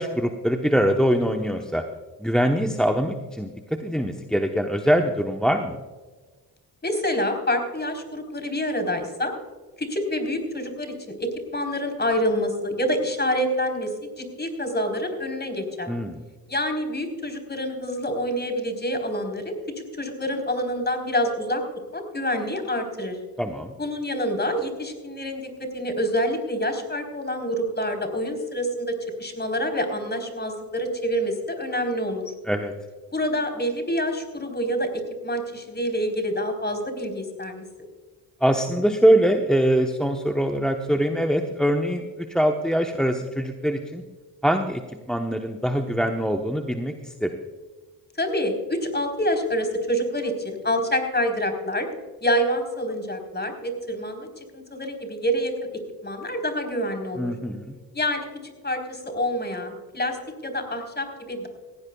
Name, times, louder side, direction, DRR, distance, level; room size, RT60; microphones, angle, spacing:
voice 1, 0.0-1.8 2.2-3.5 3.8-5.8 15.9-16.2 23.4-23.8 32.5-32.7 38.4-44.0 44.4-44.8 45.1-47.3 57.2-57.7, equal, ahead, 5 dB, 1.0 m, -23 dB
voice 2, 6.8-9.3 9.8-15.9 16.5-19.5 20.0-21.6 21.9-23.2 23.8-32.3 33.1-37.6 48.2-51.9 52.2-55.5 56.0-57.3 57.9-58.3 58.6-60.2 60.4-61.5, equal, 25° left, 5 dB, 4.0 m, -27 dB
17.0 x 15.5 x 2.3 m, 1.3 s
cardioid pair, 60°, 40 cm